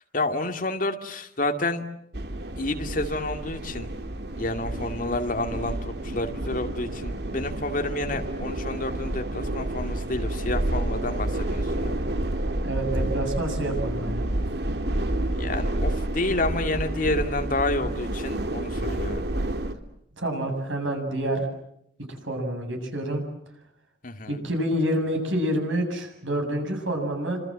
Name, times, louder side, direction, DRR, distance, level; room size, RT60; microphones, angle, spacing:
voice 1, 0.1-1.8 2.6-3.9 4.4-12.0 15.4-19.2 24.0-24.4, left 2 dB, 45° left, 5 dB, 2.4 m, -29 dB
sound 1, 2.1-19.7, right 1 dB, 60° right, 1.9 m, -29 dB
voice 2, 12.6-14.2 20.2-21.5 22.1-23.2 24.3-27.4, right 1 dB, 90° right, 4 dB, 7.8 m, -28 dB
28.0 x 26.5 x 7.6 m, 0.75 s
head